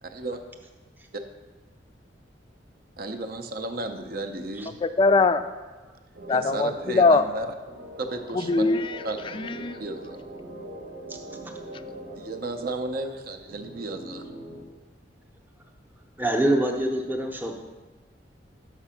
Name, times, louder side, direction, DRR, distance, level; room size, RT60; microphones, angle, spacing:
voice 1, 0.0-0.4 3.0-4.8 6.3-7.5 8.0-8.6 9.0-9.2 9.8-10.2 12.2-14.3, right 2 dB, 55° right, 7 dB, 0.6 m, -33 dB
voice 2, 4.8-5.4 6.3-7.2 8.5-8.9 9.3-9.8, left 3 dB, 30° left, 10 dB, 0.3 m, -21 dB
sound 1, 6.1-14.6, right 1 dB, 80° right, 1.4 m, -42 dB
voice 3, 16.2-17.6, right 1 dB, 10° right, 2 dB, 0.7 m, -25 dB
6.0 x 5.8 x 5.7 m, 1.3 s
head